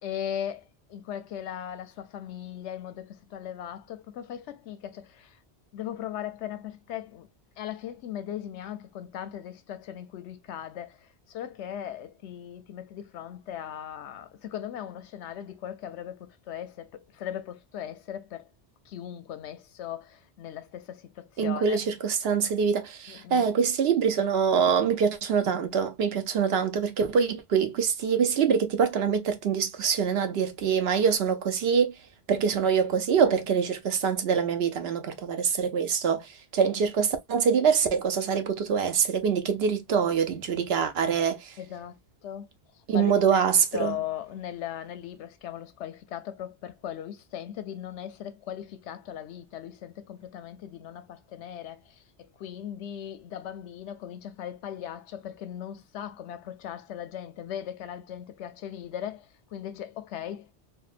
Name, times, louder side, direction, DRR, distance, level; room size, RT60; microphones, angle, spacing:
voice 1, 0.0-5.4 5.7-7.3 7.6-18.5 18.9-21.8 23.1-23.5 26.1-26.2 33.2-33.4 36.0-36.2 41.6-42.5 42.9-43.4 43.7-60.5, left 10 dB, 85° left, 0.9 m, -38 dB
voice 2, 21.4-31.9 32.3-36.3 36.5-41.5 42.9-44.0, right 6 dB, 70° right, 0.9 m, -24 dB
3.6 x 2.2 x 2.4 m
omnidirectional pair, 1.2 m